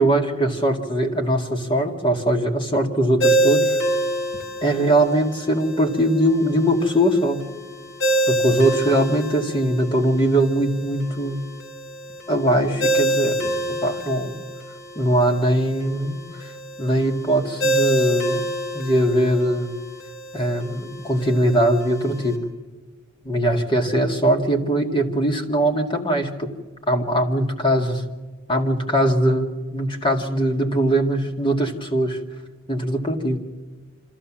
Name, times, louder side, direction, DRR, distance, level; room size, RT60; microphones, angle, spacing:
voice 1, 0.0-3.8 4.6-7.4 8.3-11.4 12.3-14.4 15.0-16.5 16.8-18.5 18.7-19.7 20.3-22.4 23.2-26.5 26.9-28.0 28.5-32.2 32.7-33.4, right 1 dB, 25° left, 3 dB, 2.1 m, -21 dB
Ringtone, 3.2-22.3, right 1 dB, 60° left, 3.8 m, -27 dB
26.0 x 14.5 x 7.4 m, 1.3 s
head